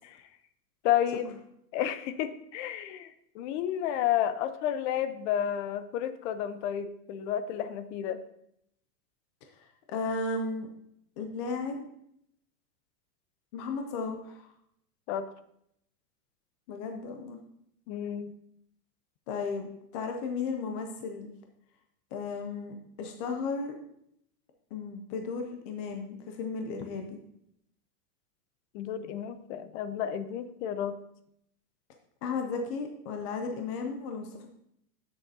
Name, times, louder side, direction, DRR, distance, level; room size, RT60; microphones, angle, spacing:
voice 1, 0.8-1.4 1.7-8.2 15.1-15.3 17.9-18.3 28.7-31.0, left 10 dB, 50° left, 12 dB, 0.7 m, -31 dB
voice 2, 9.6-10.7 11.2-11.9 13.5-14.4 16.7-17.4 19.3-19.7 19.9-21.3 22.1-23.8 24.7-27.2 32.2-34.5, left 4 dB, 25° left, 4 dB, 0.3 m, -34 dB
11.5 x 6.5 x 2.7 m, 0.73 s
supercardioid pair, 135°, 48 cm